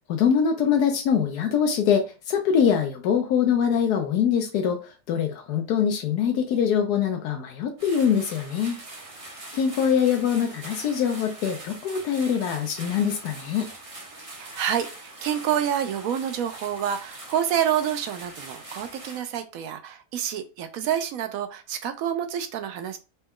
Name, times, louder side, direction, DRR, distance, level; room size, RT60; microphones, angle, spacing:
voice 1, 0.1-8.8 9.3-13.7, left 7 dB, 85° left, 1.2 m, -23 dB
sound 1, 7.8-19.2, right 2 dB, 30° right, 0.7 m, -42 dB
voice 2, 14.4-23.0, right 9 dB, 70° right, 0.9 m, -28 dB
4.1 x 2.2 x 3.6 m
omnidirectional pair, 1.6 m